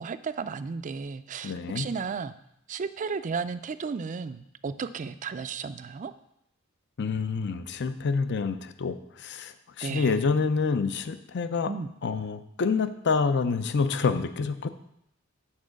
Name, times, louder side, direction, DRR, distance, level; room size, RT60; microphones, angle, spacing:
voice 1, 0.0-2.3 2.7-6.1 9.8-10.2 11.6-11.9, right 5 dB, 40° right, 13 dB, 0.4 m, -34 dB
voice 2, 1.4-1.9 7.0-11.7 12.0-14.7, left 4 dB, 55° left, 11 dB, 0.5 m, -27 dB
7.4 x 4.7 x 6.3 m, 0.77 s
head